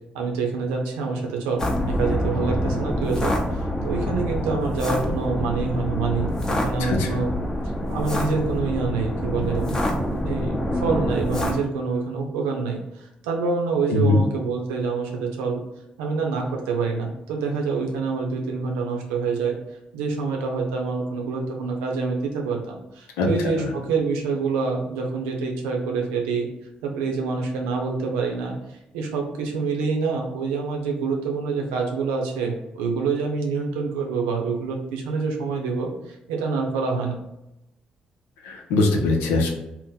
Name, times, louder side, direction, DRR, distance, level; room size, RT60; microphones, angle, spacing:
voice 1, 0.1-7.3 7.9-9.6 10.2-15.6 16.0-19.6 19.9-26.5 26.8-28.5 28.9-37.2, right 4 dB, 90° right, 1 dB, 0.6 m, -26 dB
sound 1, 1.6-11.5, left 1 dB, 20° left, 0.7 m, -26 dB
voice 2, 13.9-14.2 23.2-23.3 23.6-23.7 38.4-39.5, left 2 dB, 85° left, 2 dB, 0.5 m, -21 dB
2.8 x 2.1 x 3.7 m, 0.87 s
hypercardioid pair, 55°, 3 cm